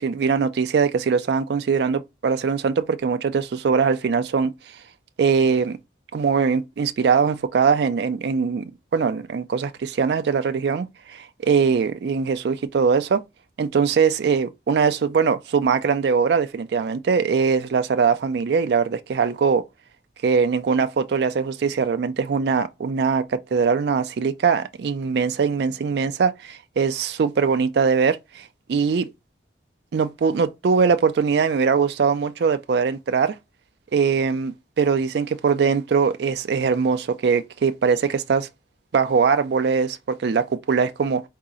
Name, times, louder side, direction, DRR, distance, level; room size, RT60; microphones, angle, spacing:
voice 1, 0.0-4.5 5.2-5.8 6.1-13.2 13.6-19.6 20.2-29.1 29.9-33.3 33.9-38.5 38.9-41.2, right 5 dB, 70° right, 0.4 m, -21 dB
4.0 x 2.8 x 3.6 m
head